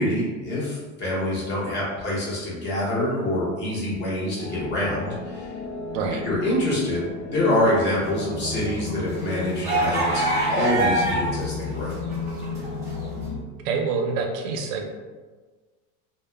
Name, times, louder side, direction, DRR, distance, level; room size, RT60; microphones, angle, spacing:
voice 1, 0.0-5.5 6.2-12.0, left 1 dB, 30° left, -6 dB, 0.7 m, -26 dB
sound 1, 4.4-13.4, left 4 dB, 65° left, 0.6 m, -33 dB
sound 2, 8.2-11.4 11.7-13.1, right 1 dB, 10° right, 0.4 m, -25 dB
voice 2, 13.6-14.9, right 4 dB, 90° right, 3 dB, 0.6 m, -26 dB
2.2 x 2.0 x 3.2 m, 1.4 s
supercardioid pair, 160°, 37 cm